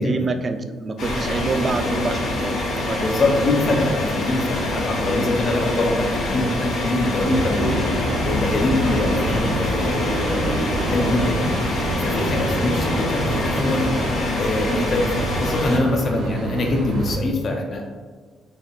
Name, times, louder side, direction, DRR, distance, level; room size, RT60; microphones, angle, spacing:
voice 1, 0.0-3.1 5.0-5.4 10.3-11.1 12.5-12.7, right 3 dB, 40° right, 7 dB, 0.4 m, -28 dB
sound 1, 1.0-15.8, left 1 dB, 70° left, 1.1 m, -25 dB
voice 2, 3.0-7.9 8.2-10.5 10.9-13.9 14.4-17.8, left 2 dB, 50° left, 1 dB, 0.6 m, -24 dB
sound 2, 7.1-13.9, left 1 dB, 25° left, 1.2 m, -34 dB
sound 3, 7.3-17.2, right 1 dB, 80° right, 0.8 m, -29 dB
4.1 x 3.6 x 2.4 m, 1.5 s
cardioid pair, 90°, 0 cm